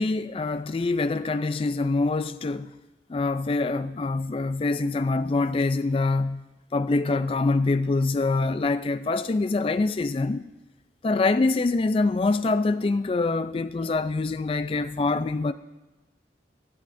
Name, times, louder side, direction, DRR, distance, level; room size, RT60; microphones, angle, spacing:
voice 1, 0.0-2.7 3.1-6.4 6.7-10.4 11.0-15.5, left 3 dB, 30° left, 0.3 m, -25 dB
13.5 x 11.5 x 2.6 m
head